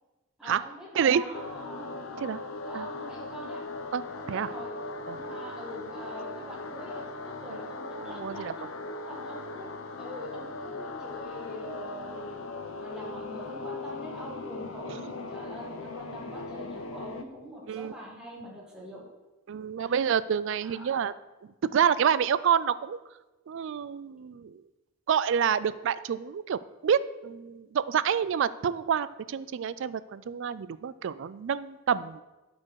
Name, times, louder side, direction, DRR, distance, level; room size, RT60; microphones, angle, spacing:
voice 1, 0.4-1.9 2.7-3.6 4.2-4.7 5.2-8.6 9.1-9.7 10.0-12.4 12.8-19.0 19.8-20.0 20.6-20.8, equal, 5° right, -5 dB, 1.7 m, -43 dB
sound 1, 1.3-17.2, left 3 dB, 80° left, 0.7 m, -39 dB
voice 2, 3.9-4.5 5.1-5.2 8.1-8.5 14.9-15.0 17.7-17.9 19.5-21.1 21.6-23.0 23.5-24.6 25.1-32.2, right 8 dB, 65° right, 16 dB, 0.3 m, -28 dB
12.5 x 4.4 x 4.7 m, 1.1 s
head